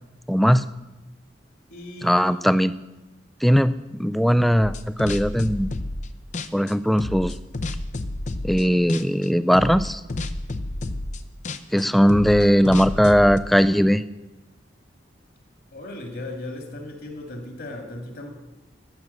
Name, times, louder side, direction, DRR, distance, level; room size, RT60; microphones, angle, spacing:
voice 1, 0.3-0.7 2.0-2.7 3.4-5.7 6.5-7.4 8.4-10.0 11.7-14.0, equal, ahead, 14 dB, 0.3 m, -19 dB
voice 2, 1.7-2.4 15.7-18.3, left 2 dB, 60° left, 4 dB, 2.1 m, -36 dB
sound 1, 4.6-6.1 6.3-8.6 8.9-9.3 9.5-13.4, left 2 dB, 40° left, 0.6 m, -30 dB
12.5 x 6.2 x 7.7 m, 1.0 s
head